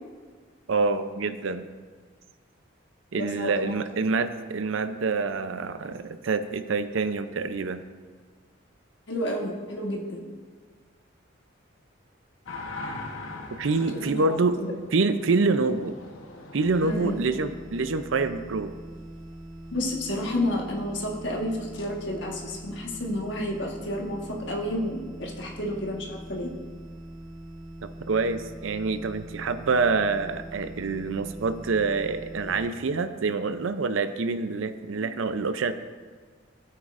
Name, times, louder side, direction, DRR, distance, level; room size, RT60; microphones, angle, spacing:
voice 1, 0.7-1.7 3.1-7.8 13.6-14.6 14.9-16.0 16.5-18.7 27.8-35.7, right 4 dB, 75° right, 11 dB, 0.5 m, -26 dB
voice 2, 3.1-3.7 9.1-10.2 13.9-14.7 16.8-17.2 19.7-24.2 24.5-26.5, left 1 dB, 60° left, -1 dB, 1.4 m, -31 dB
sound 1, 12.5-18.3 21.7-21.9, left 2 dB, 80° left, 1.0 m, -42 dB
sound 2, 16.6-32.7, right 1 dB, 15° right, 2.3 m, -43 dB
14.0 x 9.0 x 2.5 m, 1.5 s
head